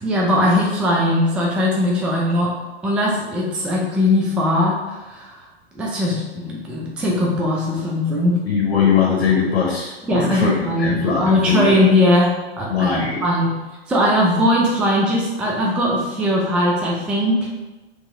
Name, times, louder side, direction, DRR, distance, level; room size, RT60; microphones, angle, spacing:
voice 1, 0.0-2.5 2.8-5.4 5.7-8.4 10.1-13.0 13.2-13.6 13.9-17.6, left 1 dB, 5° right, -3 dB, 0.3 m, -19 dB
voice 2, 8.5-11.7 12.7-13.2, left 6 dB, 90° left, -2 dB, 0.8 m, -20 dB
3.0 x 2.8 x 3.7 m, 1.1 s
hypercardioid pair, 120°, 31 cm